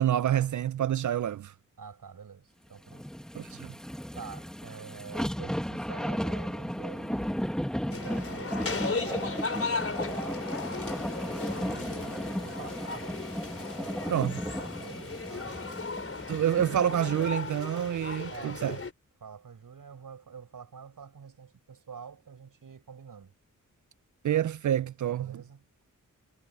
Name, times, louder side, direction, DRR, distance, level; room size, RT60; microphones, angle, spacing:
voice 1, 0.0-1.5 3.3-3.7 14.1-14.4 16.3-18.8 24.2-25.3, right 10 dB, 65° right, 0.5 m, -27 dB
voice 2, 1.8-3.1 4.1-7.6 7.9-10.5 11.5-13.2 13.5-15.7 18.3-18.8 19.2-23.3 25.1-25.7, right 6 dB, 80° right, 6.0 m, -47 dB
sound 1, 2.9-17.3 17.8-17.9, equal, ahead, 1.6 m, -35 dB
sound 2, 7.9-18.9, left 4 dB, 45° left, 3.8 m, -36 dB
wide cardioid pair, 100°, 33 cm